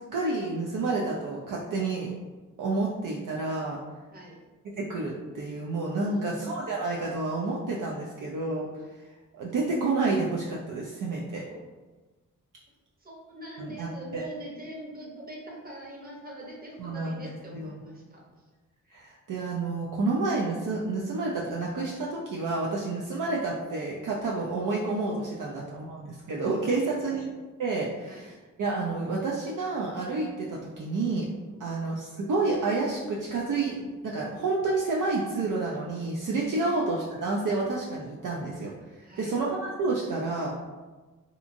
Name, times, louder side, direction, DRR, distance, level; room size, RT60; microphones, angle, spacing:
voice 1, 0.0-2.1 2.6-3.8 4.8-8.7 9.3-11.4 13.6-14.2 16.8-17.7 18.9-27.3 27.6-28.3 28.6-31.3 31.6-38.7 39.2-40.6, right 3 dB, 70° right, -3 dB, 0.5 m, -29 dB
voice 2, 6.0-6.4 11.5-11.6 13.0-18.4 25.4-25.6 26.7-27.2 28.0-28.3 31.4-31.8 36.6-36.7 39.0-39.4, right 1 dB, 25° right, -2 dB, 0.8 m, -44 dB
2.8 x 2.5 x 2.5 m, 1.2 s
cardioid pair, 75°, 33 cm